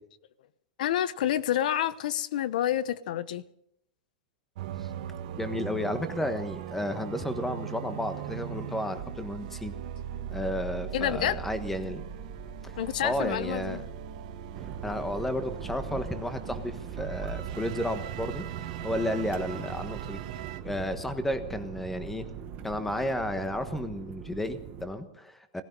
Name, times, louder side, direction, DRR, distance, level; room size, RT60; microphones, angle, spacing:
voice 1, 0.8-3.4 10.9-11.4 12.8-13.8, left 11 dB, 70° left, 0.9 m, -28 dB
sound 1, 4.6-20.6, right 10 dB, 60° right, 1.6 m, -39 dB
voice 2, 4.8-9.7 10.3-12.0 12.6-13.8 14.8-18.4 18.8-20.2 20.6-22.3 22.6-25.6, left 1 dB, 5° left, 1.3 m, -32 dB
sound 2, 14.5-24.9, right 8 dB, 35° right, 1.5 m, -41 dB
18.0 x 15.0 x 5.4 m
supercardioid pair, 150°, 5 cm